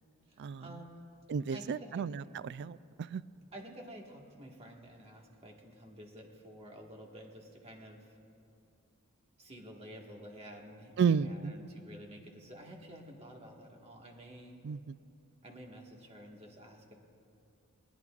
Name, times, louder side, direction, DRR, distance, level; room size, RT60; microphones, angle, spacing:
voice 1, 0.3-1.1 1.5-2.1 3.5-8.2 9.4-14.6 15.4-17.0, equal, 25° right, 0 dB, 1.6 m, -50 dB
voice 2, 1.3-3.2 11.0-11.5 14.6-15.0, right 6 dB, 50° right, 16 dB, 0.3 m, -32 dB
20.0 x 20.0 x 2.4 m, 2.6 s
head